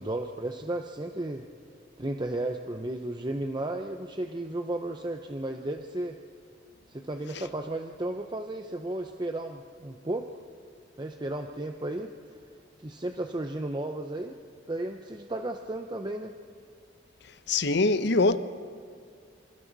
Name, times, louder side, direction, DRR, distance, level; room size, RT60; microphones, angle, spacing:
voice 1, 0.0-1.5 2.0-6.2 6.9-10.2 11.0-12.1 12.8-14.3 14.7-16.3, right 1 dB, 25° right, 0.8 m, -34 dB
voice 2, 17.5-18.4, left 3 dB, 60° left, 0.9 m, -23 dB
28.0 x 26.0 x 4.1 m
head